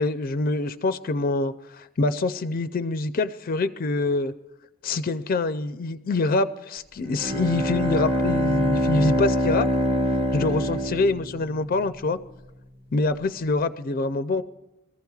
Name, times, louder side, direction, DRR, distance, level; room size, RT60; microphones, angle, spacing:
voice 1, 0.0-4.3 4.8-9.7 10.3-12.2 12.9-14.4, left 3 dB, 45° left, 11 dB, 0.4 m, -25 dB
Bowed string instrument, 7.0-11.8, equal, 25° right, 1.1 m, -24 dB
23.0 x 14.5 x 2.3 m, 0.97 s
head